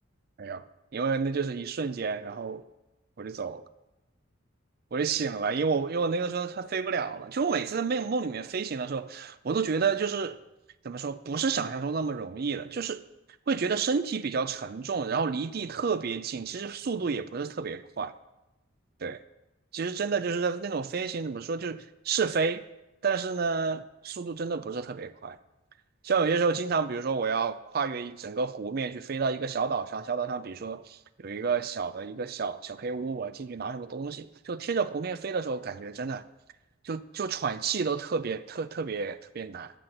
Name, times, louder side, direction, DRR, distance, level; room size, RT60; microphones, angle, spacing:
voice 1, 0.9-2.6 3.2-3.6 4.9-10.4 10.8-13.0 13.5-18.1 19.0-19.2 19.7-22.6 23.0-25.4 26.0-36.2 36.8-39.7, right 5 dB, 50° right, 0.4 m, -30 dB
13.0 x 4.4 x 7.8 m
head